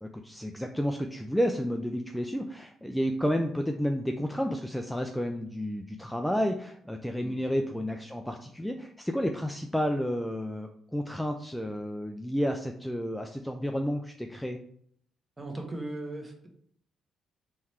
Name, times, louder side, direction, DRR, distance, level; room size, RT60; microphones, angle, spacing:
voice 1, 0.0-14.6, equal, 5° left, 4 dB, 0.4 m, -31 dB
voice 2, 15.4-16.5, right 2 dB, 20° right, 2 dB, 1.1 m, -38 dB
3.9 x 3.1 x 4.3 m, 0.67 s
cardioid pair, 90°, 0 cm